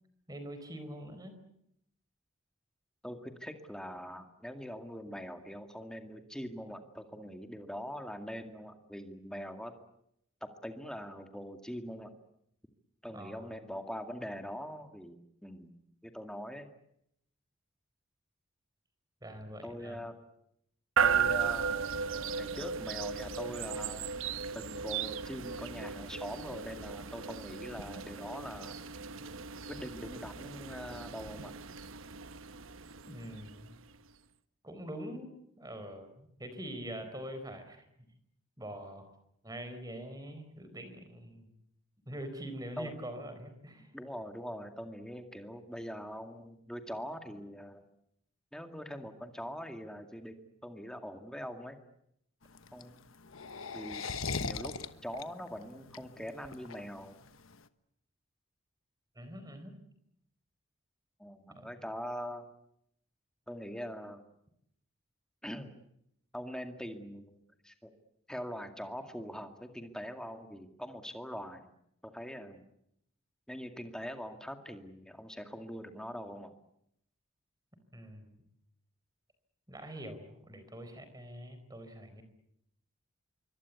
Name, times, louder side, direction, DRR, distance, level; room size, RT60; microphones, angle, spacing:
voice 1, 0.3-1.4 13.1-13.5 19.2-20.0 33.1-33.8 34.6-37.9 38.6-39.1 39.4-41.5 42.1-43.9 59.2-59.8 61.5-61.8 77.9-78.4 79.7-82.2, equal, 15° right, 9 dB, 4.3 m, -44 dB
voice 2, 3.0-9.7 10.4-12.1 13.0-16.7 19.6-20.1 21.0-21.8 22.4-24.1 24.5-28.8 29.7-31.5 42.8-42.9 43.9-47.8 48.5-51.8 52.7-53.0 53.7-54.0 54.4-54.8 55.0-57.2 61.2-62.5 63.5-64.2 65.4-65.7 66.3-67.9 68.3-71.7 72.0-72.6 73.5-76.5, equal, 5° left, 6 dB, 2.2 m, -43 dB
sound 1, 21.0-34.0, right 7 dB, 70° right, 1.0 m, -36 dB
sound 2, 52.4-57.6, left 4 dB, 70° left, 1.2 m, -39 dB
26.5 x 24.0 x 8.3 m, 0.76 s
head